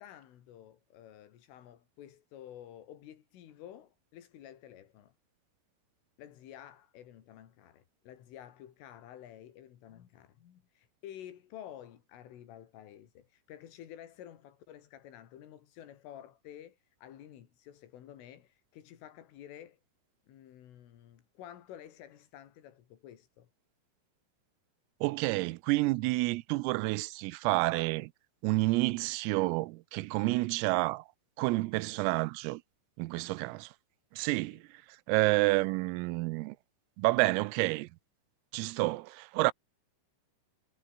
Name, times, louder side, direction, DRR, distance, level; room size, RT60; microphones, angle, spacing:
voice 1, 0.0-5.1 6.2-19.8 20.3-23.5 33.3-33.5 34.5-34.6, left 11 dB, 75° left, 4.9 m, -51 dB
voice 2, 25.0-28.1 28.4-31.1 31.4-32.6 33.0-33.7 34.1-34.8 35.1-36.6 37.0-37.9 38.5-39.5, right 22 dB, 90° right, 3.5 m, -29 dB
omnidirectional pair, 5.9 m